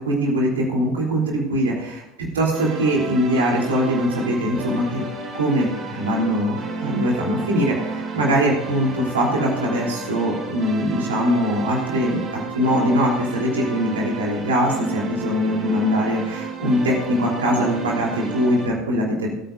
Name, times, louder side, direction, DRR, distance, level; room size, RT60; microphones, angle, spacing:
voice 1, 0.0-2.0 2.3-5.0 5.3-19.3, equal, 85° right, -3 dB, 3.5 m, -22 dB
sound 1, 2.5-18.7, right 3 dB, 45° right, 3.9 m, -32 dB
22.0 x 9.2 x 2.7 m, 0.93 s
hypercardioid pair, 75°, 0 cm